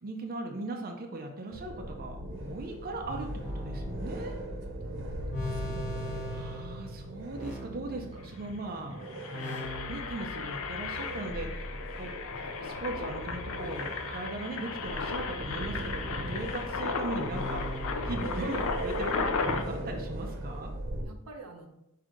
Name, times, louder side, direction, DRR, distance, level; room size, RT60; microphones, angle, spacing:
voice 1, 0.0-4.3 5.5-5.6 6.3-9.0 9.3-12.1 12.6-20.7, right 2 dB, 40° right, 3 dB, 0.5 m, -39 dB
sound 1, 1.5-21.0, right 1 dB, 60° right, 0.9 m, -39 dB
sound 2, 1.8-8.8 9.3-10.4 11.3-12.5 13.3-14.5 15.3-18.1, equal, 30° left, 1.1 m, -43 dB
voice 2, 4.6-5.7 12.3-12.5 18.1-18.3 20.5-20.6 21.0-21.7, right 3 dB, 85° right, 4 dB, 0.7 m, -49 dB
Engine, 7.9-8.0 8.2-8.5 8.9-19.6, left 5 dB, 65° left, 0.5 m, -35 dB
4.9 x 2.8 x 3.7 m, 0.83 s
head